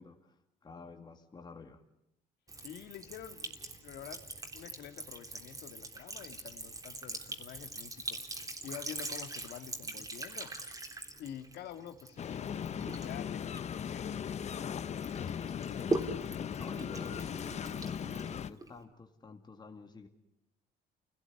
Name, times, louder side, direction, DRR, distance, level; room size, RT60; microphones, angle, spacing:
voice 1, 0.0-1.8 16.6-20.1, left 4 dB, 25° left, 5 dB, 2.4 m, -50 dB
Sink (filling or washing) / Trickle dribble, 2.5-14.6 15.0-18.8, right 2 dB, 20° right, 3.6 m, -42 dB
voice 2, 2.6-3.5 3.8-4.2 4.5-10.5 11.2-16.0, left 10 dB, 70° left, 8 dB, 2.1 m, -48 dB
sound 1, 12.2-18.5, left 8 dB, 40° left, 0.9 m, -38 dB
28.5 x 18.0 x 9.7 m, 0.82 s
cardioid pair, 110°, 17 cm